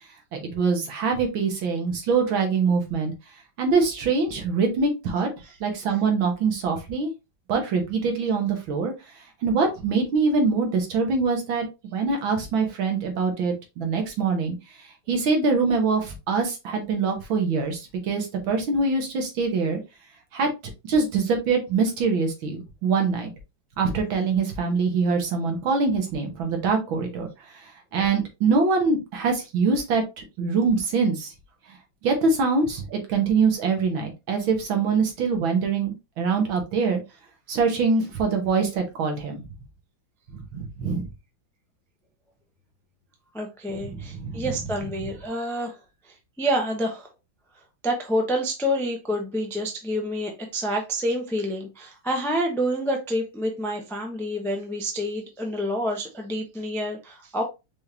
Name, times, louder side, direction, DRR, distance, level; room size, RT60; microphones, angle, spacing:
voice 1, 0.3-3.1 3.6-5.3 5.6-7.1 7.5-8.9 9.4-14.5 15.1-19.8 20.3-20.5 20.8-23.3 23.8-27.6 27.9-31.3 32.0-37.0 37.5-39.4 40.3-41.1 43.9-44.6, right 4 dB, 75° right, 2.1 m, -24 dB
voice 2, 43.3-45.8 46.0-47.1 47.8-57.4, equal, 5° left, 0.4 m, -28 dB
5.5 x 3.4 x 2.8 m
omnidirectional pair, 2.2 m